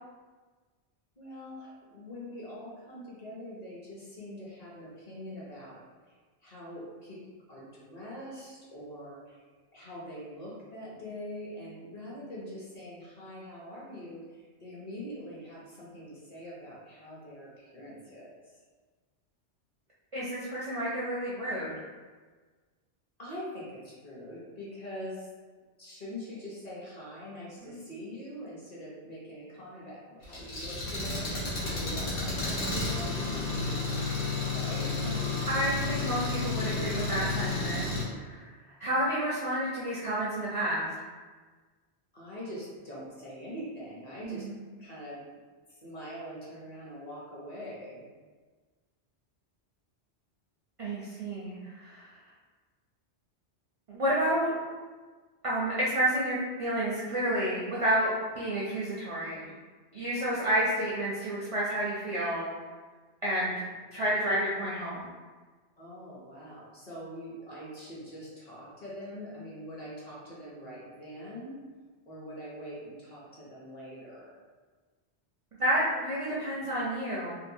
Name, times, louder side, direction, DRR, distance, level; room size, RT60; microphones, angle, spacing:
voice 1, 1.2-5.8 6.4-7.2 7.5-9.4 9.7-18.4 23.2-25.3 25.8-34.1 34.5-35.5 42.1-44.5 44.8-45.2 45.7-48.0 65.8-71.6 72.1-74.3, equal, 45° left, -6 dB, 0.7 m, -43 dB
voice 2, 20.1-21.7 27.6-27.8 35.5-38.5 38.8-40.9 44.2-44.5 50.8-52.1 53.9-54.5 55.4-59.5 59.9-62.5 63.2-63.6 63.9-65.1 75.6-77.3, right 1 dB, 50° right, -7 dB, 0.4 m, -30 dB
Engine, 30.2-38.0, left 3 dB, 85° left, 1.2 m, -31 dB
2.7 x 2.2 x 2.6 m, 1.4 s
omnidirectional pair, 1.1 m